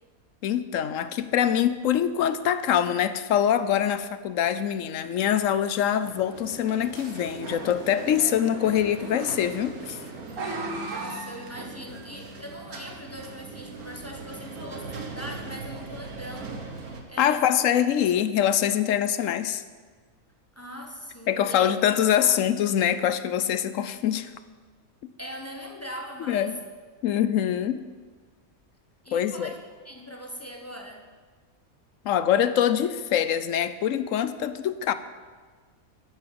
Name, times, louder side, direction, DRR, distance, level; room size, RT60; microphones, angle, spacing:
voice 1, 0.4-10.0 17.2-19.6 21.3-24.3 26.3-26.6 27.0-27.8 29.1-29.5 32.0-34.9, left 10 dB, 70° left, 13 dB, 1.0 m, -24 dB
sound 1, 6.0-17.0, right 3 dB, 90° right, 1.9 m, -38 dB
voice 2, 10.9-16.6 17.1-17.6 20.5-21.8 22.2-22.3 25.2-26.5 29.0-29.6 29.8-31.1, equal, 10° left, 2 dB, 1.1 m, -41 dB
11.0 x 8.8 x 7.7 m, 1.5 s
omnidirectional pair, 1.5 m